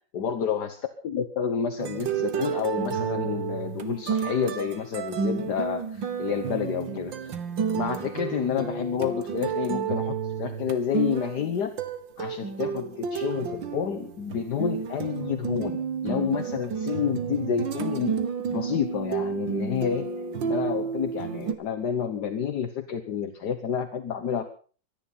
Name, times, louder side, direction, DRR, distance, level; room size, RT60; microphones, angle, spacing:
voice 1, 0.1-0.8 1.0-7.3 7.7-11.8 12.2-18.1 18.5-20.1 20.4-24.5, left 8 dB, 65° left, 8 dB, 1.7 m, -29 dB
sound 1, 1.8-21.6, right 6 dB, 85° right, 2.2 m, -31 dB
24.0 x 10.5 x 5.6 m, 0.42 s
omnidirectional pair, 2.0 m